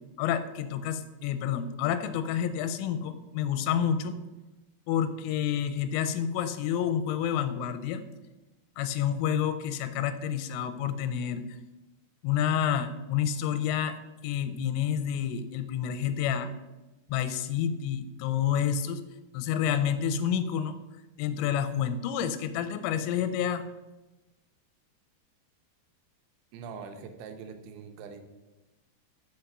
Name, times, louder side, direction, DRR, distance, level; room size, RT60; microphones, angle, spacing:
voice 1, 0.2-4.2 4.9-8.0 8.8-11.4 12.2-14.0 14.2-16.5 17.1-19.0 19.3-20.7 21.2-23.6, left 9 dB, 90° left, 11 dB, 3.2 m, -29 dB
voice 2, 26.5-28.2, right 5 dB, 80° right, 6 dB, 2.8 m, -43 dB
6.6 x 5.0 x 5.9 m, 1.1 s
omnidirectional pair, 5.6 m